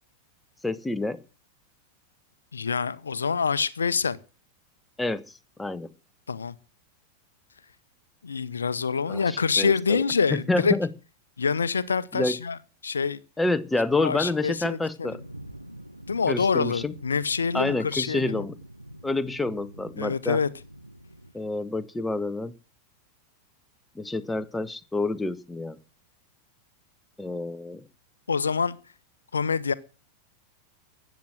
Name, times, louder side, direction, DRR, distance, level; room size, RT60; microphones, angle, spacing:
voice 1, 0.6-1.2 5.0-5.2 5.6-5.9 9.1-10.0 10.3-10.9 12.1-12.4 13.4-15.2 16.3-16.9 17.5-18.6 19.0-20.4 21.3-22.5 23.9-25.8 27.2-27.8, left 2 dB, 5° left, 1.1 m, -28 dB
voice 2, 2.5-4.2 6.3-6.5 8.2-10.8 11.4-13.2 14.0-15.1 16.1-18.5 20.0-20.5 28.3-28.8 29.3-29.7, left 5 dB, 75° left, 0.8 m, -26 dB
sound 1, 15.0-21.3, right 1 dB, 90° right, 1.1 m, -45 dB
14.5 x 9.3 x 7.7 m
figure-of-eight pair, 90°, 0 cm